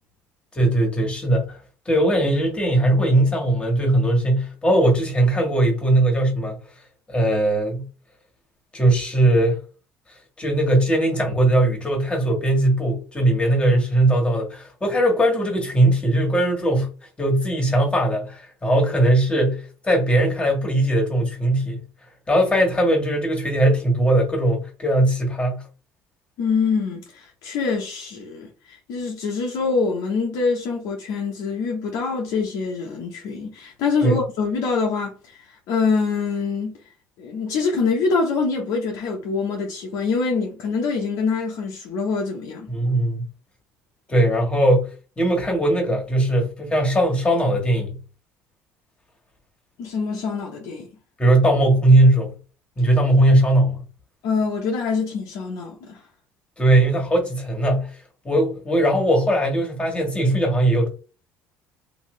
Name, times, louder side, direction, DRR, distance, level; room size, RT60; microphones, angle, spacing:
voice 1, 0.5-1.6 1.8-6.6 7.1-7.8 8.7-9.6 10.4-16.9 17.2-21.8 22.3-25.6 34.0-34.2 42.7-43.2 44.1-44.9 45.2-48.0 51.2-52.3 52.8-53.8 56.6-57.9 58.2-60.9, right 1 dB, 15° left, 1.6 m, -19 dB
voice 2, 26.4-35.1 35.7-36.7 37.2-42.7 49.8-50.9 54.2-56.0, left 4 dB, 70° left, 0.9 m, -25 dB
3.0 x 2.6 x 3.2 m
supercardioid pair, 90°, 6 cm